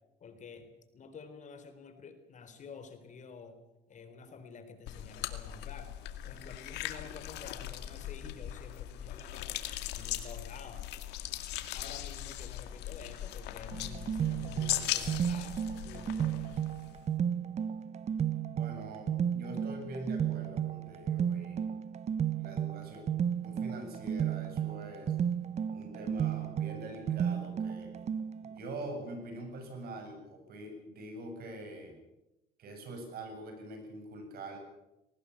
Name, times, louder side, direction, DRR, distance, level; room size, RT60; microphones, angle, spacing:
voice 1, 0.2-0.7 0.9-5.9 6.2-9.6 9.9-10.9 11.7-16.6, left 5 dB, 45° left, 8 dB, 3.8 m, -50 dB
sound 1, 4.9-17.1, left 13 dB, 90° left, 2.2 m, -39 dB
sound 2, 13.7-28.6, right 8 dB, 40° right, 0.8 m, -33 dB
voice 2, 18.5-21.7 22.4-23.0 23.4-25.1 25.7-27.9 28.4-32.0 32.6-34.6, right 1 dB, 65° right, 5 dB, 7.9 m, -44 dB
20.5 x 18.5 x 8.7 m, 0.93 s
cardioid pair, 110°, 17 cm